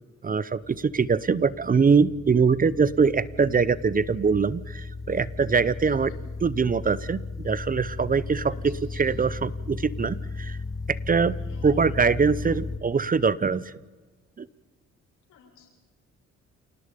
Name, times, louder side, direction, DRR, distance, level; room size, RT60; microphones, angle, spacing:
voice 1, 0.2-6.1 6.4-10.6 10.9-11.4 11.6-13.7 14.4-14.5, right 5 dB, 30° right, 20 dB, 0.7 m, -23 dB
sound 1, 0.6-12.8, left 3 dB, 10° left, 1.9 m, -36 dB
voice 2, 5.8-6.2 8.5-9.0 11.5-11.8 15.3-15.8, left 7 dB, 90° left, 1 dB, 6.9 m, -50 dB
28.5 x 18.5 x 5.2 m, 1.3 s
cardioid pair, 90°, 30 cm